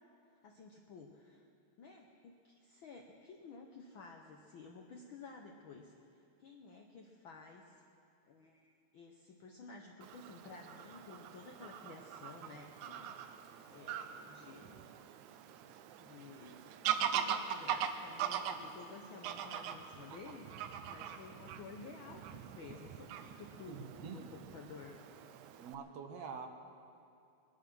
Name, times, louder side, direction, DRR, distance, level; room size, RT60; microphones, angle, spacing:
voice 1, 0.4-1.5 1.8-6.0 6.4-7.8 8.3-14.7 15.6-16.6 17.0-25.0, left 4 dB, 70° left, 1 dB, 1.2 m, -53 dB
Fowl / Bird vocalization bird call bird song, 10.0-25.7, right 9 dB, 85° right, 2.1 m, -42 dB
voice 2, 23.7-24.3 25.6-26.5, right 6 dB, 70° right, 5 dB, 2.0 m, -46 dB
22.0 x 10.5 x 6.1 m, 2.5 s
omnidirectional pair, 3.3 m